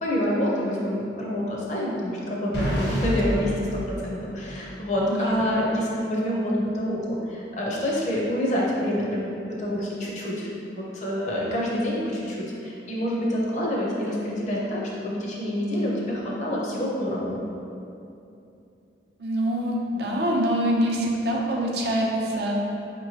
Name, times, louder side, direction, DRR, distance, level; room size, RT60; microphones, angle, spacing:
voice 1, 0.0-17.4, equal, 40° left, -4 dB, 0.6 m, -27 dB
sound 1, 2.5-4.7, equal, 75° left, 1.1 m, -28 dB
voice 2, 19.2-22.5, equal, 60° right, -1 dB, 0.5 m, -25 dB
5.3 x 2.9 x 2.7 m, 2.7 s
head